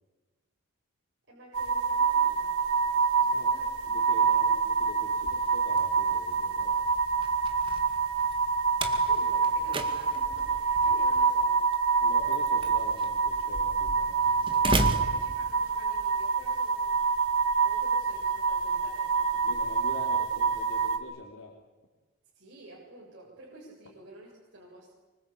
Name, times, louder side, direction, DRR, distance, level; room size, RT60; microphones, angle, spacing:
voice 1, 1.3-3.7 4.0-4.1 8.9-11.6 14.8-17.1 17.6-19.6 22.3-24.9, right 2 dB, 50° right, -4 dB, 7.6 m, -50 dB
sound 1, 1.5-21.0, right 5 dB, 80° right, 3.2 m, -26 dB
voice 2, 3.2-3.5 3.9-6.8 12.0-15.0 19.5-21.5, left 1 dB, 65° left, 0 dB, 3.7 m, -44 dB
Slam, 5.1-16.0, right 1 dB, 25° right, 2.2 m, -36 dB
25.5 x 25.5 x 8.7 m, 1.2 s
head